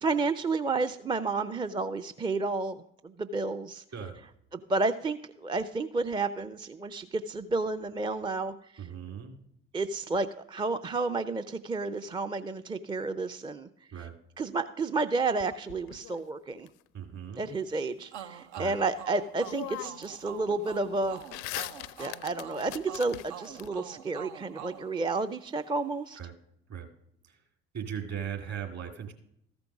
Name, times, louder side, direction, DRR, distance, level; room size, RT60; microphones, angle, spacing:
voice 1, 0.0-3.8 4.5-8.9 9.7-13.7 14.0-14.1 14.4-16.7 17.3-21.2 22.0-26.2, right 3 dB, 15° right, 10 dB, 0.4 m, -31 dB
voice 2, 8.8-9.3 13.9-14.2 16.9-17.4 18.6-18.8 26.2-26.3 26.7-26.9 27.2-27.4 27.7-29.1, right 8 dB, 50° right, 4 dB, 2.3 m, -38 dB
sound 1, 15.4-16.7 18.9-19.0 19.4-20.2 20.5-23.7, left 16 dB, 60° left, 0.5 m, -41 dB
sound 2, 18.1-25.7, right 10 dB, 75° right, 0.7 m, -46 dB
14.0 x 5.2 x 6.0 m, 0.75 s
figure-of-eight pair, 50°, 35 cm